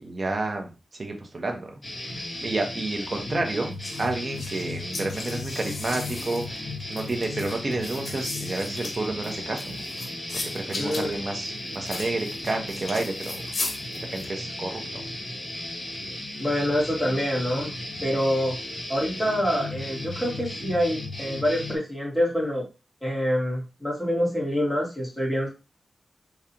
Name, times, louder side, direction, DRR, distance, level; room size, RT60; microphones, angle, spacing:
voice 1, 0.0-9.9 10.5-13.4 13.9-15.0, right 2 dB, 40° right, 2 dB, 1.1 m, -30 dB
sound 1, 1.8-21.8, left 1 dB, 25° left, 1.9 m, -35 dB
sound 2, 3.8-14.3, left 3 dB, 65° left, 1.1 m, -37 dB
voice 2, 10.8-11.1 16.4-17.7 18.0-18.6 18.9-22.6 23.0-25.5, equal, ahead, -4 dB, 2.3 m, -26 dB
5.0 x 3.2 x 2.9 m, 0.29 s
wide cardioid pair, 90°, 0 cm